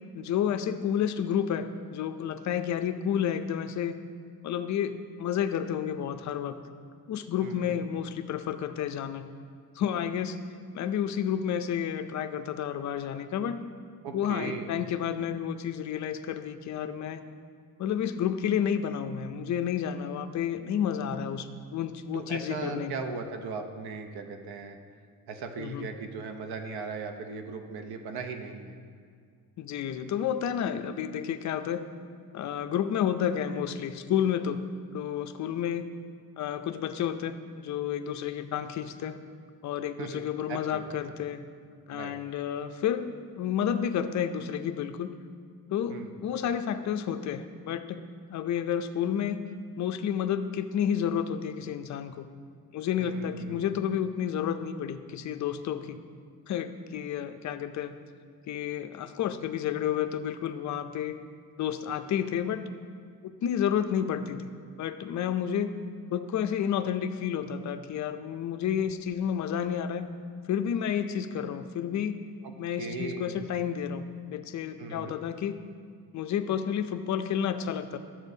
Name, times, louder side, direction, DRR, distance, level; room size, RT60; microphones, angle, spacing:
voice 1, 0.1-4.0 4.4-6.6 7.1-9.3 9.8-10.4 10.7-13.7 14.1-17.2 17.8-22.9 25.6-25.9 29.6-31.9 32.3-34.6 34.9-35.9 36.4-39.2 39.6-41.4 41.9-45.2 45.7-48.0 48.3-49.4 49.8-52.3 52.7-56.0 56.5-58.0 58.5-61.2 61.6-62.6 63.2-64.5 64.8-65.7 66.1-70.1 70.5-72.2 72.6-75.6 76.1-78.0, left 9 dB, 50° left, 10 dB, 0.4 m, -30 dB
voice 2, 7.4-7.7 14.0-14.8 22.1-24.8 25.3-28.8 40.0-40.2 40.5-40.8 41.9-42.1 45.9-46.1 53.0-53.6 72.8-73.6 74.8-75.1, right 4 dB, 75° right, 5 dB, 0.8 m, -38 dB
11.5 x 7.4 x 2.7 m, 2.1 s
cardioid pair, 145°, 38 cm